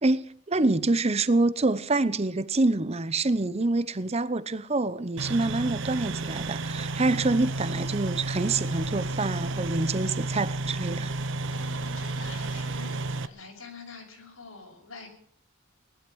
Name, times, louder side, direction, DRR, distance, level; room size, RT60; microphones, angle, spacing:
voice 1, 0.0-11.1, right 2 dB, 30° right, 0.8 m, -26 dB
sound 1, 5.2-13.3, right 2 dB, 60° right, 0.8 m, -32 dB
voice 2, 11.5-15.1, left 4 dB, 90° left, 6.1 m, -46 dB
19.0 x 12.0 x 6.3 m
head